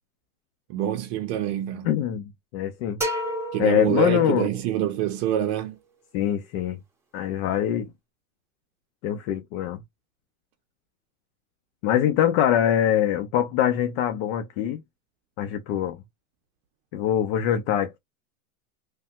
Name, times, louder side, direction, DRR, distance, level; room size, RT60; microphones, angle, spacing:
voice 1, 0.7-1.9 3.5-5.8, right 11 dB, 50° right, 0.7 m, -26 dB
voice 2, 1.8-3.0 3.6-4.5 6.1-6.8 7.1-7.9 9.0-9.8 11.8-14.8 15.4-16.0 16.9-18.0, left 11 dB, 50° left, 0.7 m, -23 dB
sound 1, 3.0-4.8, equal, 5° right, 0.9 m, -31 dB
3.3 x 2.2 x 2.8 m
supercardioid pair, 135°, 42 cm